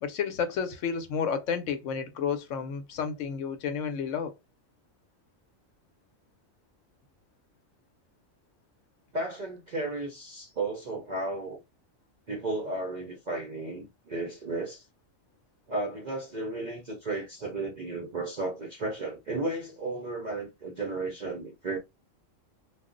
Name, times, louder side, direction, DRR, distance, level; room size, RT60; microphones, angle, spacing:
voice 1, 0.0-4.3, left 6 dB, 70° left, 0.9 m, -31 dB
voice 2, 9.1-11.6 12.3-14.9 15.7-21.8, right 2 dB, 55° right, 0.5 m, -34 dB
2.3 x 2.0 x 3.7 m
omnidirectional pair, 1.4 m